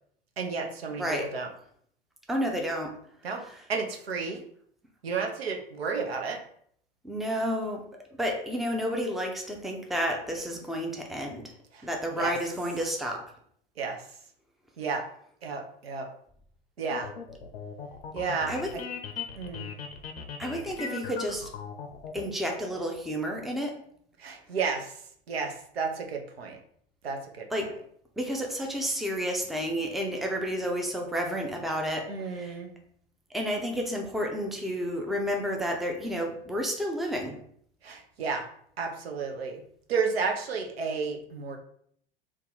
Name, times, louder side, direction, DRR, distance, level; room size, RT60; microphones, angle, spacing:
voice 1, 0.4-1.5 3.2-3.4 3.7-4.4 5.0-6.4 11.7-11.9 12.2-12.3 13.8-14.0 14.8-15.0 15.4-16.1 16.8-17.1 18.1-18.8 19.4-19.7 24.2-25.0 25.3-26.6 27.0-27.5 32.1-32.7 37.8-38.5 38.8-39.6 39.9-41.6, right 5 dB, 85° right, 3 dB, 0.6 m, -32 dB
voice 2, 1.0-1.3 2.3-3.0 3.5-3.6 7.0-7.9 8.2-11.5 11.8-13.2 18.5-18.7 20.4-21.5 22.1-23.8 27.5-27.7 28.2-32.6 33.3-37.4, equal, ahead, 1 dB, 0.5 m, -31 dB
sound 1, 16.9-22.2, left 6 dB, 85° left, 0.5 m, -39 dB
2.7 x 2.4 x 3.8 m, 0.65 s
hypercardioid pair, 80°, 30 cm